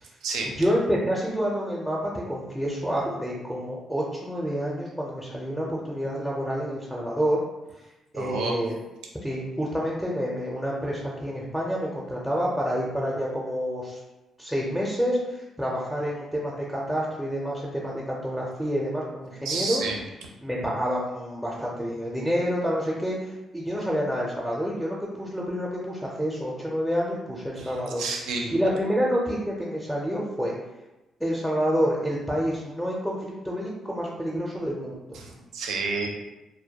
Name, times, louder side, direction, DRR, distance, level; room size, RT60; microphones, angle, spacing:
voice 1, 0.4-7.4 8.1-8.7 9.2-14.0 14.4-19.8 20.4-28.0 28.5-30.5 31.2-33.2 33.4-35.2, equal, ahead, -4 dB, 0.4 m, -28 dB
voice 2, 8.1-8.8 19.4-20.0 27.6-28.5 35.1-36.1, right 4 dB, 85° right, 1 dB, 0.4 m, -30 dB
2.2 x 2.1 x 2.8 m, 1.0 s
cardioid pair, 90°, 0 cm